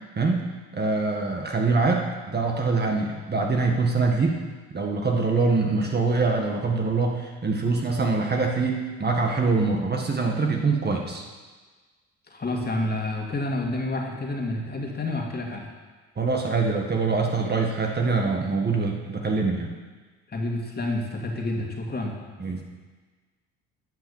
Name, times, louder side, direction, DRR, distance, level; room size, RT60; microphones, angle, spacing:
voice 1, 0.7-4.4 4.7-11.3 16.2-19.7 22.4-22.6, right 3 dB, 30° right, 1 dB, 1.7 m, -24 dB
voice 2, 12.3-15.7 20.3-22.1, left 2 dB, 30° left, 0 dB, 2.4 m, -29 dB
11.0 x 5.8 x 7.3 m, 1.4 s
supercardioid pair, 70°, 32 cm